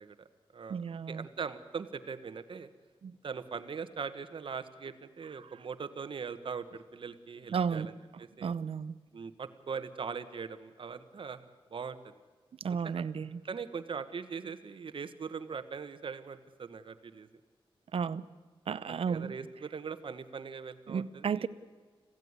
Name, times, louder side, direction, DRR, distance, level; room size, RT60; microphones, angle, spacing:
voice 1, 0.0-0.8 1.1-2.7 3.2-8.5 9.1-12.1 12.8-13.0 13.4-17.3 18.9-21.5, right 5 dB, 65° right, 11 dB, 1.3 m, -41 dB
voice 2, 0.7-1.2 3.0-3.2 5.4-5.5 7.5-7.9 8.4-8.9 12.6-13.4 17.9-18.3 18.7-19.4 20.9-21.5, right 6 dB, 80° right, 16 dB, 0.8 m, -33 dB
26.5 x 16.0 x 9.6 m, 1.4 s
wide cardioid pair, 130°, 9 cm